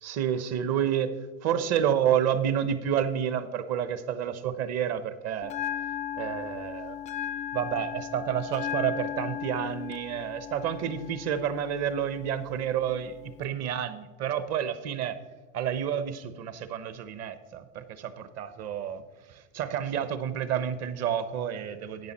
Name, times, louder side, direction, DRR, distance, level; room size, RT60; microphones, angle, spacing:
voice 1, 0.0-1.1 1.4-5.5 6.2-7.0 7.5-15.2 15.5-19.0 19.3-22.1, right 9 dB, 40° right, 12 dB, 1.0 m, -29 dB
Bell, 5.4-13.4, left 9 dB, 20° left, 0.3 m, -37 dB
10.5 x 8.6 x 4.3 m, 1.2 s
hypercardioid pair, 100°, 39 cm